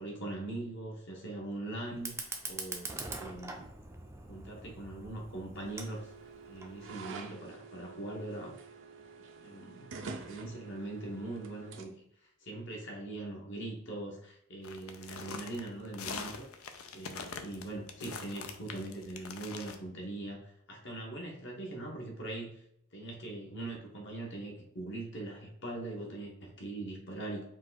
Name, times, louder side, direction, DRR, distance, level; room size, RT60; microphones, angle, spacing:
voice 1, 0.0-4.0 4.3-6.1 6.5-8.5 9.4-11.9 12.4-16.5 16.9-20.4 20.7-22.6 22.9-27.4, right 2 dB, 60° left, 0 dB, 1.1 m, -41 dB
Fire, 1.9-6.9, right 3 dB, 10° right, 0.4 m, -44 dB
sound 1, 5.7-11.8, right 4 dB, 60° right, 0.5 m, -48 dB
sound 2, 14.6-19.8, left 5 dB, 85° left, 0.5 m, -43 dB
4.7 x 2.3 x 4.0 m, 0.74 s
head